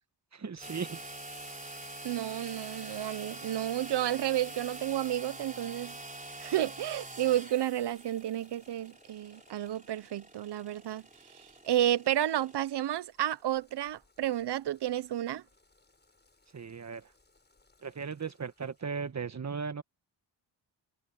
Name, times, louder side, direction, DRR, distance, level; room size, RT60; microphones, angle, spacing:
voice 1, 0.3-1.1 16.5-17.1 17.8-19.8, right 5 dB, 35° right, 1.6 m, -37 dB
Boiling, 0.6-19.0, left 3 dB, 25° left, 7.3 m, -60 dB
sound 1, 0.6-12.6, right 2 dB, 15° right, 3.8 m, -46 dB
voice 2, 2.0-6.0 6.4-11.0 11.6-15.4, right 12 dB, 65° right, 0.8 m, -31 dB
cardioid pair, 90°, 44 cm